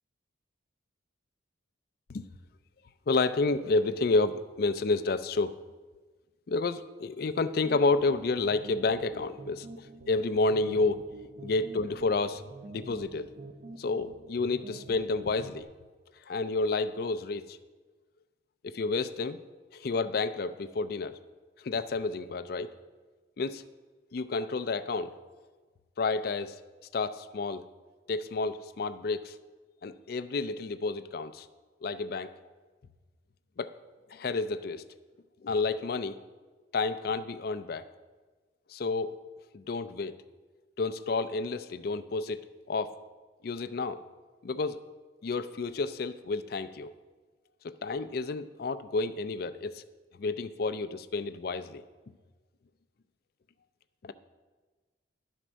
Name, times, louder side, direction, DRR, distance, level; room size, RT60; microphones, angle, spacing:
voice 1, 3.1-5.5 6.5-11.0 11.4-12.4 12.7-13.3 13.8-15.7 16.3-17.6 18.6-19.4 19.7-21.2 21.6-22.7 23.4-23.6 24.1-25.2 26.0-26.6 26.9-27.6 28.1-29.4 29.8-31.5 31.8-32.3 33.6-33.7 34.1-34.8 35.4-36.2 36.7-37.9 38.7-39.2 39.5-40.1 40.8-43.0 43.4-44.0 44.4-44.8 45.2-46.9 47.6-49.8 50.2-51.8 54.0-54.1, left 3 dB, 50° left, 13 dB, 0.4 m, -30 dB
sound 1, 7.6-15.6, right 2 dB, 45° right, 0.5 m, -47 dB
11.0 x 4.4 x 6.1 m, 1.3 s
head